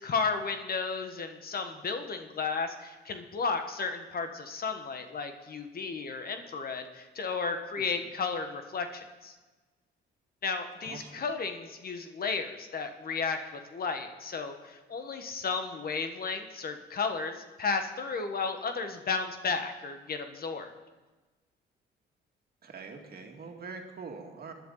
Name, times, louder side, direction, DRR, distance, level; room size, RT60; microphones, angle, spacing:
voice 1, 0.0-9.3 10.4-20.7, left 4 dB, 50° left, 6 dB, 1.4 m, -33 dB
voice 2, 10.8-11.2 22.6-24.5, right 4 dB, 50° right, 2 dB, 2.1 m, -44 dB
20.5 x 10.5 x 4.0 m, 1.2 s
cardioid pair, 90°, 20 cm